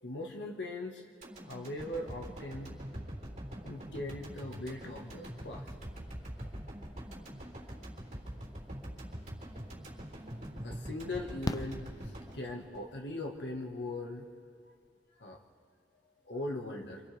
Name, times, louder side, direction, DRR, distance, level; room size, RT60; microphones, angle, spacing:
voice 1, 0.0-1.0 1.5-2.7 3.6-5.6 10.6-11.8 12.3-14.3 15.2-15.4 16.2-17.0, left 2 dB, 80° left, 0 dB, 1.6 m, -39 dB
sound 1, 1.2-13.4 13.8-13.9, equal, 40° right, 3.8 m, -44 dB
Fireworks, 9.8-9.9 11.4-12.8 14.5-14.6 14.8-14.9, left 1 dB, 20° left, 0.4 m, -38 dB
27.5 x 27.0 x 3.5 m, 2.2 s
head